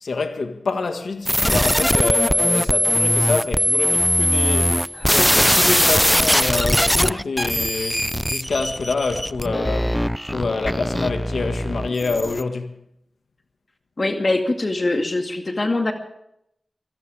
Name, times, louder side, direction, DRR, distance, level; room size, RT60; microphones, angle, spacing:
voice 1, 0.0-12.8, left 3 dB, 85° left, 1.8 m, -26 dB
sound 1, 1.3-12.4, equal, 5° left, 0.5 m, -20 dB
voice 2, 4.9-5.5 14.0-15.9, left 2 dB, 50° left, 2.1 m, -23 dB
24.0 x 17.5 x 3.5 m
cardioid pair, 45°, 0 cm